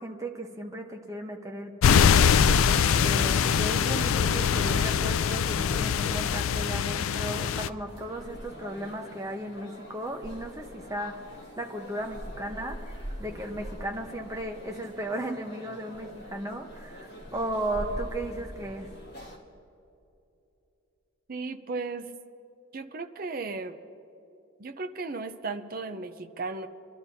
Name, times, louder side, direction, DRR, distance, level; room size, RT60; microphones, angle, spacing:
voice 1, 0.0-2.4 3.0-11.2 11.6-18.9, right 1 dB, 15° right, 2 dB, 0.9 m, -35 dB
sound 1, 1.8-7.7, left 7 dB, 90° left, 0.4 m, -23 dB
sound 2, 7.8-19.4, equal, 50° left, 2.1 m, -43 dB
voice 2, 21.3-22.1 22.7-23.8 24.6-26.7, right 3 dB, 45° right, 7 dB, 0.6 m, -35 dB
26.5 x 12.0 x 2.7 m, 2.8 s
head